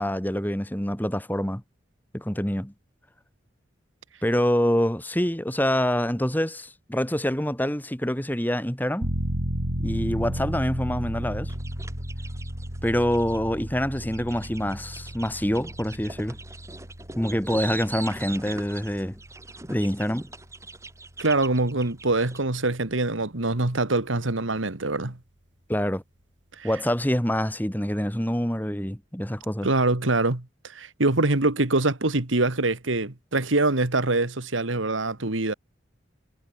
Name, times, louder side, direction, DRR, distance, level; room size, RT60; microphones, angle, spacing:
voice 1, 0.0-1.6 2.1-2.7 4.2-9.1 9.8-11.5 12.8-16.4 17.2-19.2 19.7-20.3 25.7-26.0 26.6-29.7, equal, 10° left, 2.9 m, -26 dB
sound 1, 9.0-21.5 21.9-22.0, equal, 65° right, 4.6 m, -34 dB
sound 2, 11.5-13.4 14.0-22.4, right 3 dB, 15° right, 4.4 m, -41 dB
voice 2, 21.2-25.2 26.6-26.7 29.6-35.5, right 2 dB, 85° right, 2.1 m, -24 dB
head